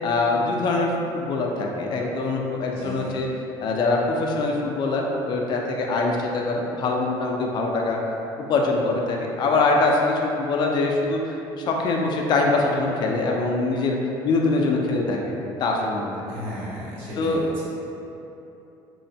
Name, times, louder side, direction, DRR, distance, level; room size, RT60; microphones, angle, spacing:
voice 1, 0.0-3.3 3.6-8.0 8.5-14.0 14.2-15.2 15.6-16.1 17.2-17.4, left 3 dB, 50° left, 0 dB, 0.4 m, -23 dB
voice 2, 2.7-3.2 16.3-17.7, equal, 70° right, -8 dB, 0.9 m, -35 dB
3.0 x 2.1 x 2.6 m, 2.9 s
cardioid pair, 120°, 10 cm